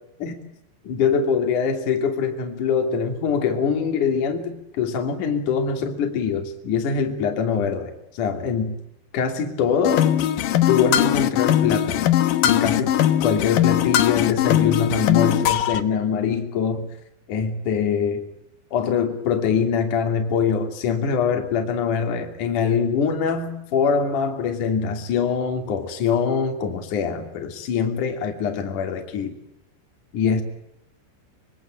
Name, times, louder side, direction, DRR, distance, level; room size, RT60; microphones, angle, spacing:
voice 1, 0.8-8.8 9.1-10.1 10.7-12.2 12.4-13.0 13.2-16.9 17.3-18.3 18.7-29.4 30.1-30.4, left 6 dB, 50° left, 4 dB, 4.0 m, -23 dB
sound 1, 9.8-15.8, left 11 dB, 65° left, 2.4 m, -20 dB
26.0 x 23.5 x 8.8 m, 0.81 s
omnidirectional pair, 5.2 m